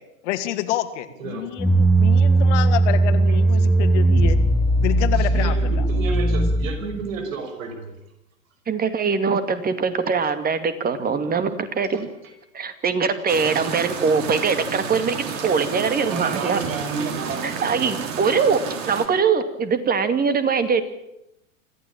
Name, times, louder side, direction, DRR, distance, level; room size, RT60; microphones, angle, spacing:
voice 1, 0.2-4.4 4.8-5.9, left 13 dB, 55° left, 9 dB, 2.5 m, -28 dB
sound 1, 1.6-7.0, right 2 dB, ahead, 1.9 m, -18 dB
voice 2, 5.3-8.0 12.0-12.3 16.1-18.1, right 4 dB, 65° right, 6 dB, 5.6 m, -32 dB
voice 3, 8.7-12.1 12.5-16.6 17.4-20.8, right 5 dB, 20° right, 10 dB, 2.4 m, -22 dB
sound 2, 13.3-19.1, right 6 dB, 40° right, 3.9 m, -31 dB
26.0 x 15.0 x 8.9 m, 0.86 s
hypercardioid pair, 100°, 42 cm